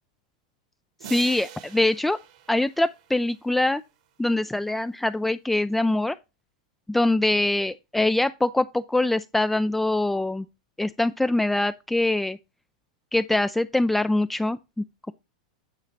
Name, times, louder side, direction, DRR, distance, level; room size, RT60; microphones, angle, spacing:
sound 1, 1.0-3.5, right 9 dB, 65° right, 1.4 m, -44 dB
voice 1, 1.1-2.2 2.5-3.8 4.2-6.2 6.9-10.5 10.8-12.4 13.1-15.1, left 2 dB, 5° left, 0.3 m, -23 dB
9.1 x 4.0 x 4.5 m
hypercardioid pair, 110°, 4 cm